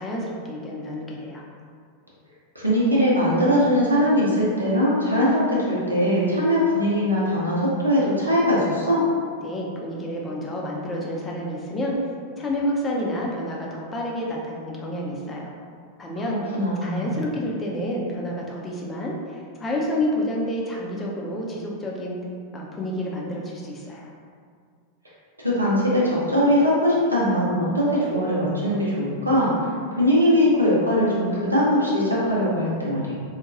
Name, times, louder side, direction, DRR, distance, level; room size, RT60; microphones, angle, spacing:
voice 1, 0.0-1.4 9.4-12.1 12.4-15.5 16.0-22.2 22.5-24.1, left 1 dB, 20° left, -2 dB, 0.5 m, -29 dB
voice 2, 2.5-9.0 16.5-17.1 25.4-29.5 30.0-33.1, equal, 85° right, -6 dB, 0.7 m, -21 dB
2.8 x 2.2 x 2.5 m, 2.1 s
figure-of-eight pair, 90°, 0 cm